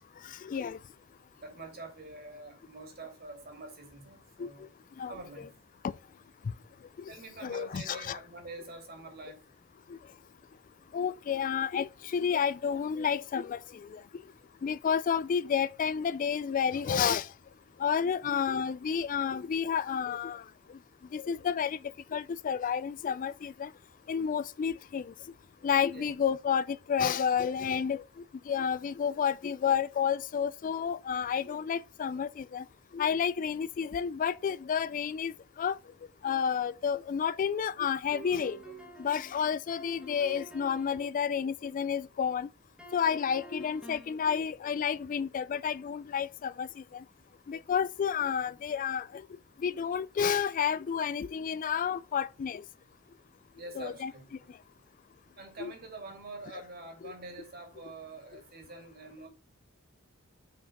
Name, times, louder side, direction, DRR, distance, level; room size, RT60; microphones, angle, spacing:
voice 1, 0.2-0.8 4.4-4.7 5.0-5.5 7.4-8.2 10.9-14.0 14.6-17.3 17.8-20.4 20.7-20.8 21.1-21.8 22.1-23.7 24.1-25.1 25.6-28.0 28.5-32.7 32.9-35.8 36.2-38.6 39.0-42.5 42.9-47.0 47.5-49.2 49.6-52.6 53.8-54.1 55.6-55.7 57.0-57.1, left 7 dB, 40° left, 0.3 m, -30 dB
voice 2, 1.4-4.7 5.1-5.5 7.1-9.4 25.9-26.1 53.5-54.5 55.4-59.3, right 2 dB, 45° right, 2.4 m, -46 dB
sound 1, 38.1-41.1 42.8-44.2, right 2 dB, 5° right, 1.6 m, -49 dB
5.9 x 5.2 x 5.2 m
head